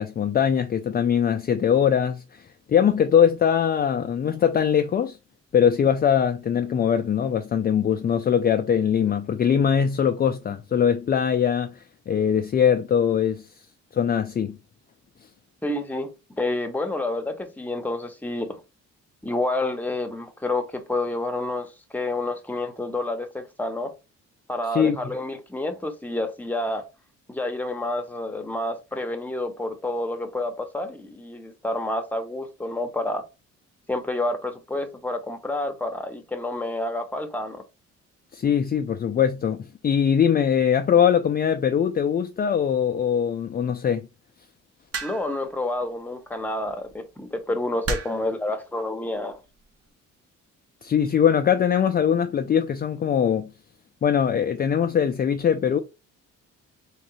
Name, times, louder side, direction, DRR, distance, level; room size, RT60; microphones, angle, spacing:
voice 1, 0.0-2.4 2.7-5.2 5.5-13.5 13.9-14.6 24.7-25.1 38.3-44.1 50.8-53.5 54.0-55.8, left 8 dB, 30° left, 0.4 m, -22 dB
voice 2, 15.6-18.6 19.2-23.9 24.5-26.8 27.3-33.2 33.9-37.6 45.0-49.4, left 2 dB, 5° left, 0.8 m, -29 dB
sound 1, 44.9-45.4 46.7-46.9 47.8-48.3 49.3-49.6, right 3 dB, 50° right, 1.0 m, -31 dB
3.6 x 3.2 x 3.0 m
cardioid pair, 90°, 30 cm